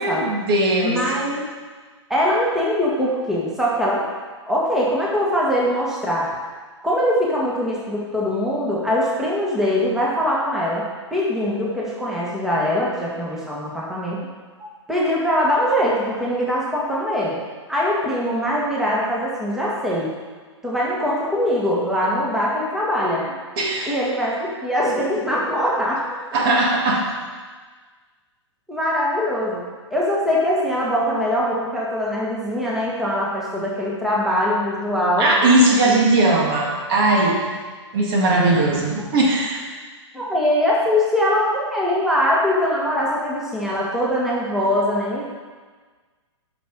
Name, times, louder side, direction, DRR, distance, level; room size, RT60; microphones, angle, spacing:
voice 1, 0.0-1.0 14.6-14.7 23.6-24.0 26.3-27.1 35.2-37.5 37.9-39.7, right 2 dB, 50° right, -1 dB, 1.9 m, -19 dB
voice 2, 0.8-1.4 2.1-4.0 4.5-6.3 6.8-10.8 11.1-14.2 14.9-17.4 17.7-20.1 20.6-23.2 23.8-26.0 28.7-29.6 29.9-35.3 35.8-36.0 38.3-38.5 40.1-45.2, equal, 5° right, -6 dB, 1.7 m, -22 dB
9.1 x 6.1 x 4.6 m, 1.4 s
hypercardioid pair, 130°, 16 cm